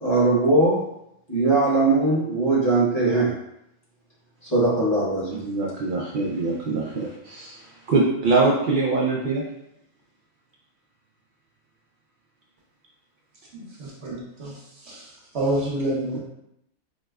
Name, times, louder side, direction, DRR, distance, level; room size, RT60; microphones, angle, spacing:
voice 1, 0.0-0.9 1.3-3.3 4.5-5.4, right 2 dB, 30° left, -8 dB, 1.0 m, -20 dB
voice 2, 5.4-7.6 7.9-9.4 16.1-16.2, right 3 dB, 80° right, -3 dB, 0.4 m, -23 dB
voice 3, 13.5-14.6 14.9-15.0 15.3-16.2, right 1 dB, 60° right, -4 dB, 1.0 m, -28 dB
4.9 x 2.1 x 2.3 m, 0.80 s
omnidirectional pair, 1.4 m